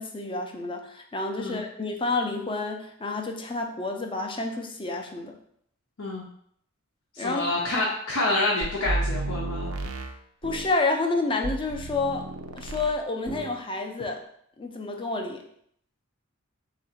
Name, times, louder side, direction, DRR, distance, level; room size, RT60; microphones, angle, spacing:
voice 1, 0.0-5.3 7.2-7.4 10.4-12.3 12.5-14.2 14.6-15.4, left 3 dB, 25° left, 3 dB, 0.5 m, -29 dB
voice 2, 7.1-9.7, left 2 dB, 75° left, -4 dB, 0.7 m, -27 dB
sound 1, 8.6-10.8 11.4-13.0 13.3-13.6, right 2 dB, 80° right, 0.5 m, -32 dB
3.7 x 2.5 x 4.3 m, 0.67 s
head